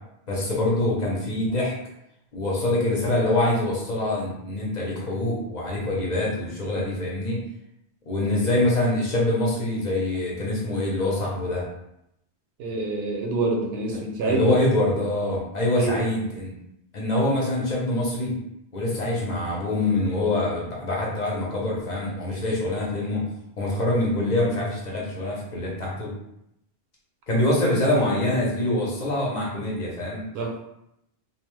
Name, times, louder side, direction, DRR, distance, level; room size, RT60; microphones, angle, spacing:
voice 1, 0.3-1.7 2.3-7.4 8.1-11.7 14.2-16.5 16.9-18.4 18.7-23.3 23.6-26.1 27.3-30.2, left 1 dB, 50° left, -4 dB, 0.7 m, -25 dB
voice 2, 12.6-14.5 15.8-16.0 30.3-30.6, right 3 dB, 80° right, 1 dB, 0.8 m, -26 dB
2.7 x 2.0 x 3.0 m, 0.81 s
omnidirectional pair, 1.1 m